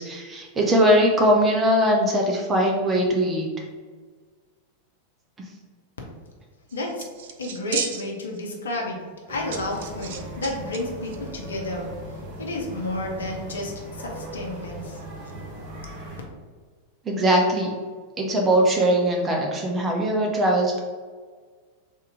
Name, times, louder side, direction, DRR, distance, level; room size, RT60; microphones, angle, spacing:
voice 1, 0.0-3.5 17.1-17.7 18.2-20.8, equal, 20° right, 0 dB, 0.7 m, -21 dB
voice 2, 6.7-7.1 7.4-9.0 9.3-11.9 12.4-15.0, left 2 dB, 70° left, 0 dB, 0.8 m, -31 dB
sound 1, 6.7-8.4 8.7-8.8 9.5-10.8 11.0-11.2, right 6 dB, 55° right, 0.4 m, -33 dB
Kid in distance, 9.3-16.2, right 1 dB, 40° right, 1.2 m, -38 dB
3.6 x 2.9 x 4.8 m, 1.5 s
figure-of-eight pair, 90°, 0 cm